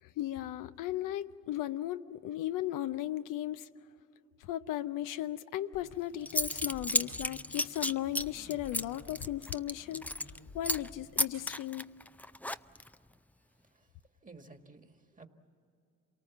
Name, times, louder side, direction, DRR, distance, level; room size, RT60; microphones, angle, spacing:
voice 1, 0.0-3.7 4.4-10.1 10.5-11.8, left 13 dB, 80° left, 0.7 m, -36 dB
sound 1, 5.6-6.4 6.6-7.4 8.8-8.9 9.2-9.4 9.6-12.3, right 6 dB, 65° right, 4.0 m, -62 dB
sound 2, 5.7-11.5, left 4 dB, 55° left, 1.3 m, -53 dB
Zipper (clothing) / Coin (dropping), 5.9-6.0 6.3-10.4 10.6-10.9 11.2-12.9, left 1 dB, 5° left, 0.5 m, -33 dB
voice 2, 14.2-15.3, right 3 dB, 25° right, 1.8 m, -54 dB
27.5 x 19.0 x 7.2 m
supercardioid pair, 55°, 31 cm